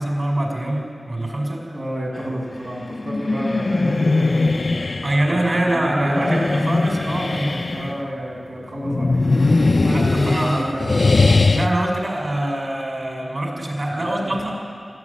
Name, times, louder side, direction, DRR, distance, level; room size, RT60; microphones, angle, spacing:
voice 1, 0.0-1.6 5.0-7.9 9.8-10.7 11.5-14.5, right 1 dB, 50° right, 1 dB, 5.7 m, -24 dB
voice 2, 1.6-4.8 5.1-6.5 7.7-9.6 10.1-10.9 14.0-14.5, equal, 90° right, -6 dB, 7.3 m, -30 dB
sound 1, 2.8-5.2 6.0-8.0 8.8-11.7, left 3 dB, 60° left, 0.7 m, -20 dB
20.5 x 15.0 x 9.8 m, 2.1 s
wide cardioid pair, 50°, 0 cm